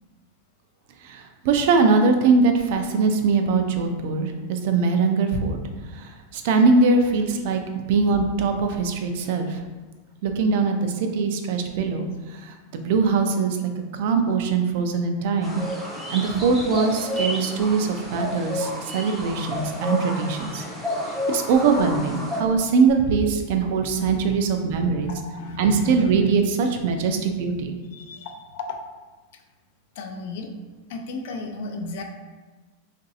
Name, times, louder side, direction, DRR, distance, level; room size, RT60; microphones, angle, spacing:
voice 1, 1.0-5.6 5.9-7.6 7.9-9.6 10.2-13.6 13.9-15.6 16.1-20.6 21.3-25.1 25.6-27.8, right 4 dB, 60° right, 5 dB, 0.3 m, -22 dB
sound 1, 15.4-22.4, left 1 dB, 5° left, 0.5 m, -30 dB
voice 2, 24.9-26.3 27.9-28.8 30.0-30.5 30.9-32.0, left 3 dB, 65° left, 4 dB, 0.4 m, -34 dB
3.0 x 2.5 x 2.7 m, 1.3 s
supercardioid pair, 150°, 0 cm